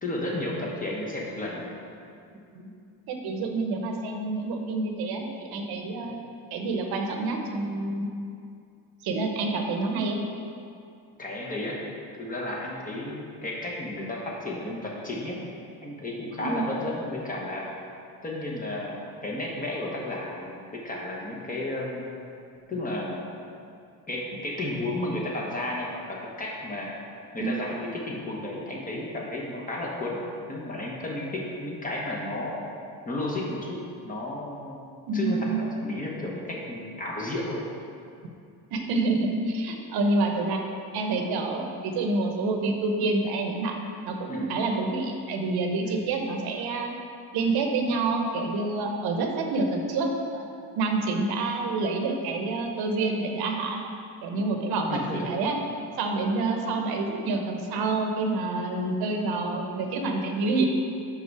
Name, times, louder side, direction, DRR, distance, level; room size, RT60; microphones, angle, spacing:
voice 1, 0.0-1.7 6.0-6.2 11.2-11.8 12.2-15.4 15.8-17.7 18.2-22.1 22.7-23.3 24.1-26.9 27.3-30.2 30.5-32.6 33.0-33.8 34.0-34.8 35.1-37.6 44.3-44.5 45.9-46.0 54.9-55.2, left 1 dB, 20° left, -3 dB, 1.0 m, -33 dB
voice 2, 2.3-2.7 3.1-6.2 6.5-8.1 9.0-10.2 16.4-16.7 27.4-27.5 35.1-35.6 38.7-40.6 40.9-46.9 47.3-50.5 50.7-53.8 54.2-55.6 56.0-60.7, right 3 dB, 70° right, 3 dB, 0.9 m, -28 dB
5.6 x 5.4 x 4.7 m, 2.5 s
cardioid pair, 145°, 39 cm